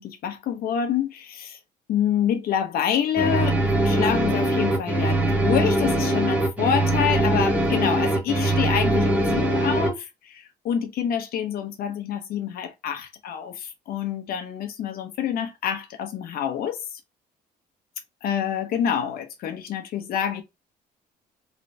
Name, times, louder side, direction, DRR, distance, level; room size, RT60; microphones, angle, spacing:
voice 1, 0.0-1.6 1.9-17.0 18.2-20.4, left 9 dB, 65° left, 0.7 m, -27 dB
sound 1, 3.2-9.9, right 1 dB, 10° right, 1.2 m, -22 dB
3.2 x 2.9 x 2.7 m
cardioid pair, 110°, 17 cm